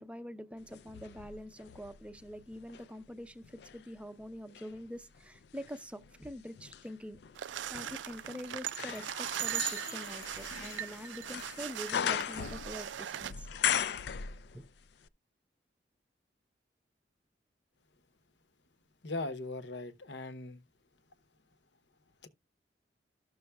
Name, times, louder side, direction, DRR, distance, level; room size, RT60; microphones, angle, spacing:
voice 1, 0.0-7.2 7.7-13.5 14.5-14.6, equal, 5° right, 0.5 m, -45 dB
sound 1, 0.7-2.9 3.4-14.8 15.1-15.2, left 8 dB, 65° left, 0.4 m, -39 dB
sound 2, 7.4-13.3, right 11 dB, 85° right, 0.4 m, -39 dB
voice 2, 19.0-20.6 22.2-22.3, left 2 dB, 85° left, 0.9 m, -39 dB
13.5 x 6.4 x 2.3 m
head